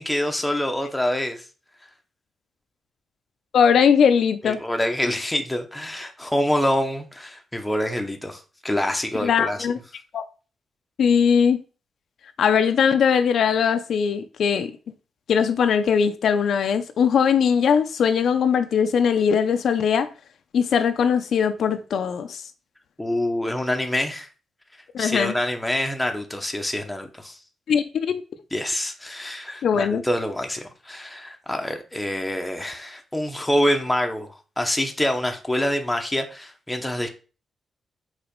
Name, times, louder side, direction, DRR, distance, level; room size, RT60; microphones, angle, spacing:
voice 1, 0.0-1.4 4.4-9.6 23.0-24.3 25.0-27.4 28.5-37.1, left 1 dB, 5° left, 0.8 m, -26 dB
voice 2, 3.5-4.6 9.2-9.8 10.1-10.2 11.0-11.6 12.4-14.7 15.3-20.1 20.5-22.4 24.9-25.3 27.7-28.2 29.6-30.0, left 7 dB, 60° left, 0.5 m, -20 dB
4.9 x 4.0 x 5.1 m
wide cardioid pair, 165°, 0 cm